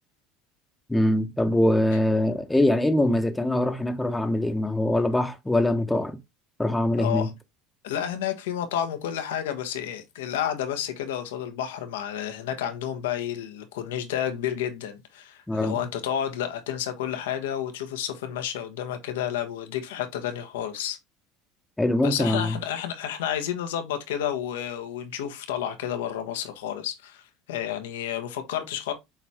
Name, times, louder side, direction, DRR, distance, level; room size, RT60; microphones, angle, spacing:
voice 1, 0.9-6.2 6.6-7.3 15.5-15.8 21.8-22.6, left 1 dB, 10° left, 1.4 m, -23 dB
voice 2, 7.0-7.3 7.8-21.0 22.0-27.2 27.5-28.9, left 10 dB, 80° left, 1.5 m, -30 dB
7.2 x 4.1 x 3.6 m
hypercardioid pair, 80°, 0 cm